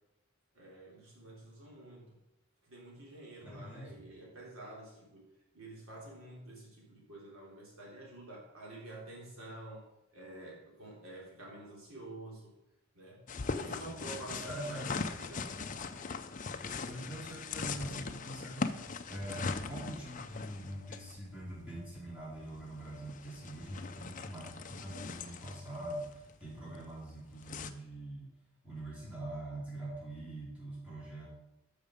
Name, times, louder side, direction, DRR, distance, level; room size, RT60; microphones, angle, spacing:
voice 1, 0.5-2.2 2.6-12.5 12.9-13.3 13.5-14.8 15.1-15.5, right 2 dB, 85° right, -3 dB, 3.7 m, -49 dB
voice 2, 3.4-4.0 13.7-13.9 14.3-15.0 16.6-28.4 28.6-31.3, right 1 dB, 5° right, -8 dB, 4.6 m, -44 dB
sound 1, 13.3-27.7, left 4 dB, 40° left, 0.6 m, -41 dB
12.5 x 6.5 x 5.2 m, 0.90 s
head